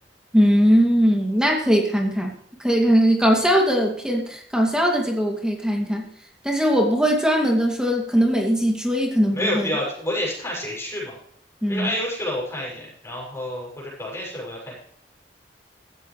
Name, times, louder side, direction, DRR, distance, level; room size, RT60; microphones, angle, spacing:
voice 1, 0.3-2.3 2.6-6.1 6.4-9.7 11.6-11.9, equal, 5° right, 0 dB, 2.7 m, -20 dB
voice 2, 9.3-11.2 11.7-14.7, left 1 dB, 15° left, -5 dB, 7.1 m, -29 dB
16.0 x 14.0 x 3.4 m, 0.64 s
head